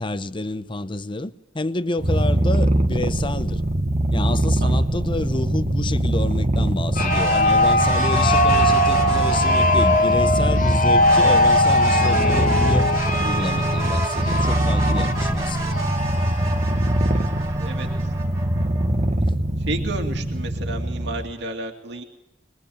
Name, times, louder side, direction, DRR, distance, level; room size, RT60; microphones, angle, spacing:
voice 1, 0.0-3.6 4.1-12.9 13.2-15.8 19.2-19.5, left 2 dB, 25° left, 0.8 m, -29 dB
Purr, 2.0-21.3, right 1 dB, 40° right, 1.6 m, -23 dB
sound 1, 7.0-16.7, left 1 dB, 45° left, 1.8 m, -21 dB
sound 2, 7.0-10.3 11.0-19.1, right 1 dB, 20° right, 2.7 m, -30 dB
voice 2, 19.7-22.0, right 2 dB, 65° right, 2.6 m, -31 dB
22.5 x 22.0 x 8.8 m
head